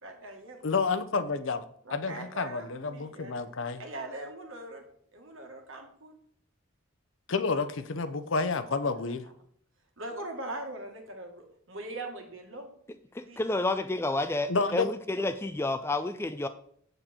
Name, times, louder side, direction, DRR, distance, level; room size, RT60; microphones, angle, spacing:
voice 1, 0.0-0.8 1.8-3.4 3.8-4.9 5.1-6.2 8.6-9.3 10.0-12.7 13.2-13.4, right 2 dB, 65° right, 3 dB, 1.8 m, -42 dB
voice 2, 0.6-1.6 1.9-3.8 7.3-9.2 14.5-14.9, left 4 dB, 60° left, 10 dB, 0.7 m, -29 dB
voice 3, 13.1-16.5, left 2 dB, 10° left, 10 dB, 0.3 m, -30 dB
7.8 x 6.7 x 4.3 m, 0.63 s
head